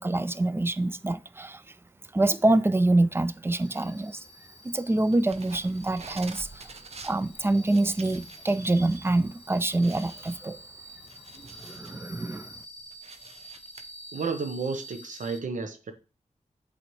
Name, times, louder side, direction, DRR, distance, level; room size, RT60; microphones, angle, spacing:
voice 1, 0.0-1.8 2.1-4.2 4.6-6.7 7.0-10.6 11.6-12.5, right 2 dB, 20° right, 0.4 m, -26 dB
sound 1, 3.6-15.4, equal, 60° left, 0.8 m, -48 dB
sound 2, 5.1-9.1 9.4-9.5 9.8-12.0 12.4-13.8, right 4 dB, 55° right, 0.6 m, -47 dB
voice 2, 14.1-15.9, right 4 dB, 90° right, 0.9 m, -32 dB
8.0 x 4.2 x 3.1 m
wide cardioid pair, 85°, 13 cm